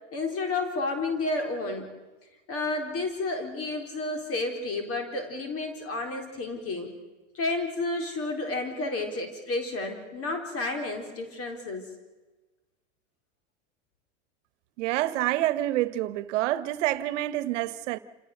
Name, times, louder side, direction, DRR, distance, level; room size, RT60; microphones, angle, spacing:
voice 1, 0.1-1.9 2.5-6.9 7.3-11.9, left 2 dB, 40° left, 4.0 m, -31 dB
voice 2, 14.8-18.0, right 15 dB, 75° right, 1.3 m, -27 dB
28.0 x 17.0 x 6.7 m
hypercardioid pair, 105°, 37 cm